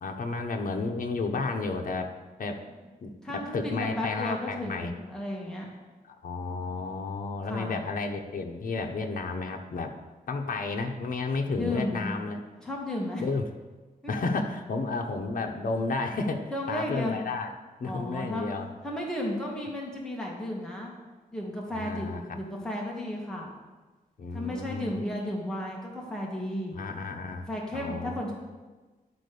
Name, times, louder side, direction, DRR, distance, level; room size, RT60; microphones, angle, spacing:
voice 1, 0.0-2.1 2.4-2.6 3.0-4.9 6.1-9.9 10.3-12.4 13.2-13.4 14.1-17.5 17.8-18.7 21.7-22.4 24.2-25.0 26.7-27.5 27.7-28.3, left 3 dB, 65° left, 3 dB, 0.9 m, -32 dB
voice 2, 3.2-5.7 7.5-7.8 11.5-12.2 12.6-13.2 14.0-14.1 16.5-17.2 17.8-18.5 18.8-20.9 21.3-23.5 24.3-26.8 27.4-28.3, left 1 dB, 5° left, -3 dB, 1.8 m, -33 dB
11.0 x 4.2 x 6.8 m, 1.2 s
wide cardioid pair, 115°, 15 cm